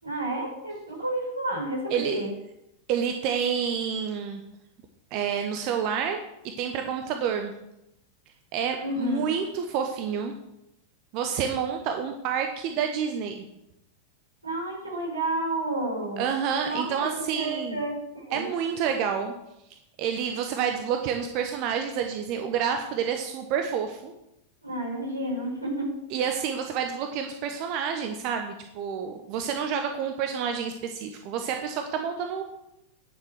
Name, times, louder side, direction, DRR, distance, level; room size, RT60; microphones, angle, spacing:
voice 1, 0.0-2.3 8.8-9.3 14.4-16.3 16.6-18.5 24.6-25.9, right 1 dB, 85° right, -3 dB, 4.9 m, -31 dB
voice 2, 2.9-4.4 5.1-6.2 6.6-7.5 8.5-10.3 11.1-13.5 16.2-17.8 18.3-19.3 20.0-24.1 26.1-32.4, right 7 dB, 45° right, 5 dB, 1.0 m, -29 dB
10.0 x 6.8 x 6.3 m, 0.85 s
figure-of-eight pair, 90°, 0 cm